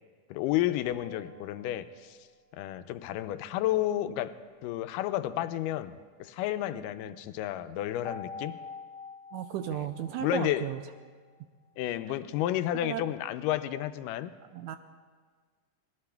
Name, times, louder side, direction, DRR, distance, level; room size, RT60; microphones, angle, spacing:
voice 1, 0.3-2.2 2.5-4.3 4.6-8.6 10.2-10.7 11.8-14.3, left 13 dB, 90° left, 11 dB, 2.2 m, -31 dB
sound 1, 0.8-2.4 8.0-11.4, left 5 dB, 65° left, 1.4 m, -46 dB
voice 2, 9.3-10.8 12.8-13.0 14.5-14.8, right 11 dB, 80° right, 8 dB, 1.8 m, -34 dB
24.5 x 19.0 x 2.3 m, 1.5 s
omnidirectional pair, 3.7 m